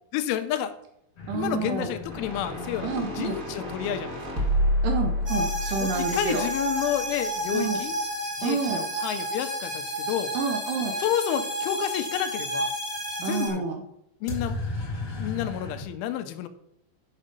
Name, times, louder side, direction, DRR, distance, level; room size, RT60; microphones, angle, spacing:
voice 1, 0.1-0.7 1.3-4.2 5.8-8.0 8.4-10.3 11.0-12.7 13.2-13.6 14.2-14.6 15.2-16.5, left 10 dB, 85° left, 9 dB, 3.2 m, -30 dB
sound 1, 1.2-6.9 14.3-15.8, left 2 dB, 55° left, 1.3 m, -38 dB
voice 2, 1.3-1.9 2.8-3.4 4.8-6.4 7.5-7.8 8.4-8.8 10.3-10.9 13.2-13.8, right 5 dB, 75° right, 4 dB, 2.6 m, -29 dB
sound 2, 2.0-7.3, left 1 dB, 60° right, 0.8 m, -29 dB
sound 3, 5.2-13.5, right 1 dB, 15° right, 1.1 m, -31 dB
9.1 x 6.5 x 5.3 m, 0.79 s
omnidirectional pair, 5.4 m